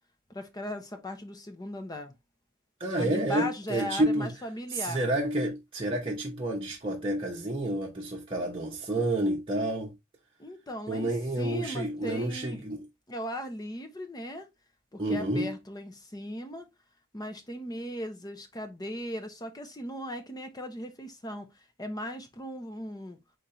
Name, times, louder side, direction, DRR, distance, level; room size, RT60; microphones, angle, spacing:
voice 1, 0.3-2.1 2.9-5.0 10.4-12.6 13.1-14.5 14.9-16.7 17.1-21.5 21.8-23.2, equal, 20° left, 0.7 m, -38 dB
voice 2, 2.8-4.3 4.7-9.9 10.9-12.8 15.0-15.5, right 1 dB, 25° right, 0.9 m, -29 dB
4.2 x 3.9 x 3.0 m
head